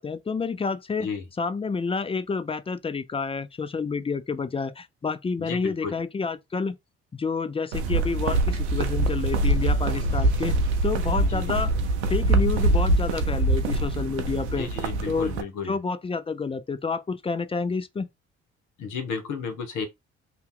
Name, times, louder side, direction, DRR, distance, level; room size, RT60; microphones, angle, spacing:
voice 1, 0.0-1.1 1.4-6.8 7.1-10.6 10.8-11.7 12.1-14.7 15.1-15.4 15.6-18.1, left 4 dB, 20° left, 0.4 m, -29 dB
voice 2, 5.4-5.9 11.3-11.6 14.6-15.8 18.8-19.9, left 5 dB, 65° left, 1.0 m, -33 dB
sound 1, 7.7-15.4, right 2 dB, 90° right, 0.5 m, -24 dB
2.8 x 2.3 x 3.6 m
hypercardioid pair, 45°, 33 cm